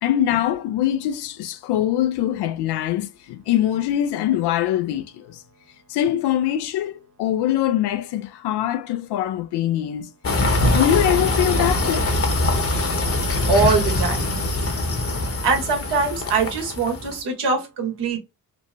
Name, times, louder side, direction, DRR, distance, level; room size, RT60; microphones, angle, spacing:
voice 1, 0.0-5.4 5.9-10.1 10.6-12.1, left 12 dB, 70° left, 0.5 m, -23 dB
sound 1, 10.2-17.2, left 1 dB, 35° left, 0.9 m, -23 dB
voice 2, 13.5-14.4 15.4-18.2, right 4 dB, 75° right, 1.3 m, -22 dB
3.1 x 2.1 x 2.6 m
supercardioid pair, 55°, 42 cm